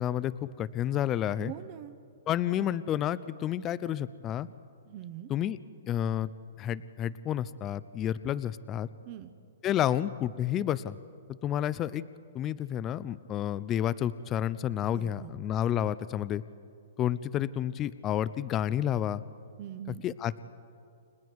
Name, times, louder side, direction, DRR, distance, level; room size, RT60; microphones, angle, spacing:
voice 1, 0.0-1.5 2.3-4.5 5.3-5.6 5.9-6.3 6.6-8.9 9.6-10.9 11.4-12.0 12.3-16.4 17.0-19.2 20.0-20.4, left 11 dB, 25° left, 17 dB, 0.5 m, -30 dB
voice 2, 1.4-1.9 4.9-5.3 9.0-9.3 14.9-15.3 19.6-20.0, right 12 dB, 40° right, 10 dB, 1.0 m, -42 dB
30.0 x 25.0 x 4.7 m, 2.4 s
hypercardioid pair, 145°, 0 cm